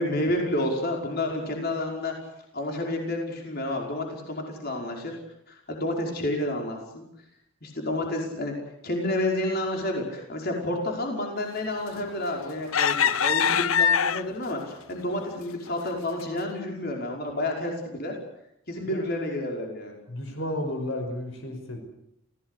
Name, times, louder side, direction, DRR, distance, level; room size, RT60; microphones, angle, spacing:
voice 1, 0.0-2.1 2.5-5.2 5.7-7.0 7.6-8.5 8.8-18.1 18.7-20.0, left 1 dB, 50° left, 1 dB, 5.4 m, -30 dB
sound 1, 11.9-12.3 12.7-14.5 15.1-15.2 15.7-15.9, left 8 dB, 85° left, 0.8 m, -23 dB
voice 2, 20.1-21.8, left 1 dB, 70° left, 5 dB, 5.6 m, -32 dB
28.0 x 17.5 x 8.3 m, 0.77 s
head